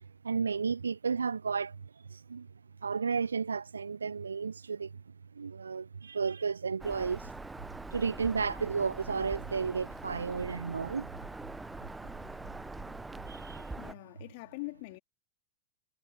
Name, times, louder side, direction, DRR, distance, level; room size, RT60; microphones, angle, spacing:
voice 1, 0.2-1.8 2.1-2.5 2.8-5.0 5.4-7.3 7.9-11.1 13.3-13.8, right 5 dB, 75° right, 0.4 m, -33 dB
Bird vocalization bird call bird song, 6.8-13.9, right 2 dB, 10° right, 1.2 m, -43 dB
voice 2, 13.8-15.0, left 27 dB, 50° left, 3.0 m, -43 dB
figure-of-eight pair, 90°, 0 cm